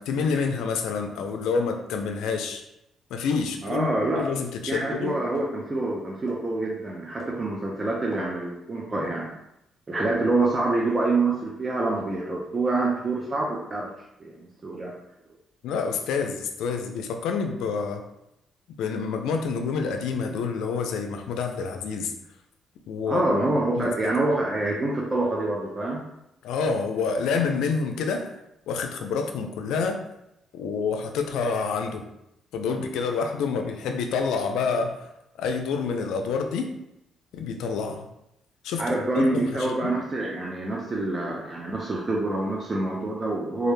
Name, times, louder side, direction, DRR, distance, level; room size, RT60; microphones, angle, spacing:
voice 1, 0.0-2.6 3.1-3.9 4.1-5.2 15.6-18.0 18.8-22.1 22.9-23.3 23.8-24.1 26.4-28.3 28.7-30.0 30.5-32.0 32.5-35.1 35.4-36.7 37.3-38.1 38.6-39.9, left 5 dB, 85° left, 5 dB, 0.3 m, -28 dB
voice 2, 3.6-4.3 4.7-9.3 9.9-13.9 14.2-14.9 23.1-26.0 38.8-43.7, right 2 dB, 30° right, -3 dB, 0.4 m, -26 dB
sound 1, 5.3-5.4 6.3-6.4 7.2-7.3 8.1-8.2 9.0-9.1 9.9-10.0, left 2 dB, 35° left, 0.9 m, -39 dB
2.3 x 2.0 x 3.1 m, 0.83 s
cardioid pair, 90°, 0 cm